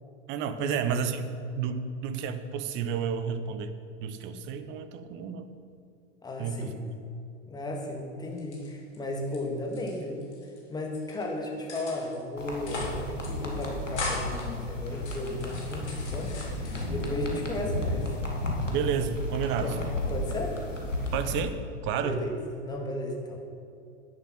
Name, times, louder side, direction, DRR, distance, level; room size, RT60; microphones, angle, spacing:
voice 1, 0.3-3.7 4.0-5.5 6.4-6.9 18.7-19.7 21.1-22.2, right 7 dB, 30° right, 10 dB, 1.0 m, -31 dB
voice 2, 6.2-6.8 7.5-18.2 19.6-19.7 20.1-20.6 21.9-23.7, left 1 dB, 10° left, 1 dB, 2.2 m, -35 dB
sound 1, 8.3-9.4 9.6-10.6 10.9-11.3 11.7-12.2 12.5-13.0 13.2-13.3 13.6-14.4 14.9-17.1 17.5-18.2, left 3 dB, 65° left, 3.7 m, -39 dB
sound 2, 12.4-21.4, left 1 dB, 90° left, 2.4 m, -33 dB
11.5 x 10.5 x 6.1 m, 2.6 s
figure-of-eight pair, 95°, 36 cm